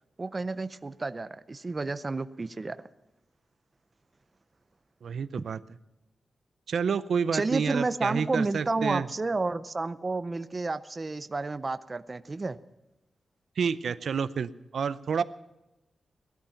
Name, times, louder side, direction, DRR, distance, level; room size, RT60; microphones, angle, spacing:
voice 1, 0.2-2.8 5.4-5.5 7.3-12.6, right 3 dB, 25° right, 12 dB, 0.5 m, -31 dB
voice 2, 5.0-5.6 6.7-9.1 13.6-15.2, right 6 dB, 70° right, 15 dB, 0.6 m, -29 dB
18.5 x 13.0 x 5.7 m, 0.99 s
wide cardioid pair, 180°, 0 cm